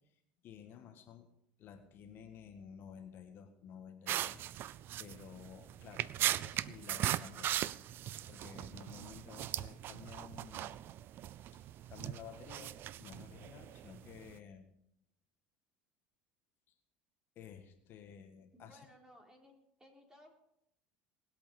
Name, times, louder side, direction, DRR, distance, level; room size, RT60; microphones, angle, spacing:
voice 1, 0.4-1.3 1.6-4.7 5.0-7.6 7.9-10.8 11.5-14.7 16.7-16.8 17.3-18.9, left 8 dB, 50° left, 6 dB, 1.6 m, -53 dB
sound 1, 4.1-14.4, right 12 dB, 50° right, 0.5 m, -39 dB
voice 2, 18.5-20.3, equal, 10° right, 1 dB, 3.7 m, -60 dB
20.5 x 8.5 x 5.3 m, 0.77 s
supercardioid pair, 95°, 5 cm